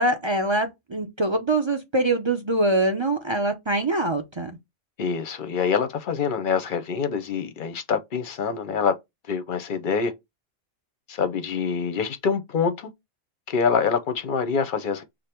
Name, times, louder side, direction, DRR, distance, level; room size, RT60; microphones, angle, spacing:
voice 1, 0.0-4.5, right 2 dB, 35° right, 0.4 m, -24 dB
voice 2, 5.0-8.9 9.3-10.1 11.1-12.9 13.5-15.0, left 6 dB, 50° left, 0.7 m, -25 dB
5.0 x 2.1 x 4.3 m
omnidirectional pair, 1.3 m